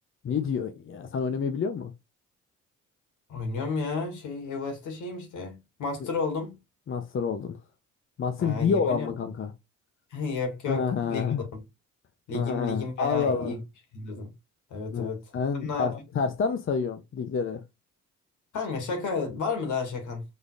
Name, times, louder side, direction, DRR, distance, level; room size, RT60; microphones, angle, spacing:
voice 1, 0.2-1.9 6.9-7.6 8.2-9.5 10.7-11.4 12.3-13.5 14.9-17.6, left 6 dB, 45° left, 0.7 m, -28 dB
voice 2, 3.3-5.5 5.8-6.6 8.4-9.1 10.1-11.3 11.5-11.6 12.3-13.6 13.9-14.3 14.7-15.2 15.6-15.9 18.5-20.2, left 4 dB, 80° left, 2.3 m, -32 dB
5.3 x 3.9 x 2.5 m
cardioid pair, 90°, 30 cm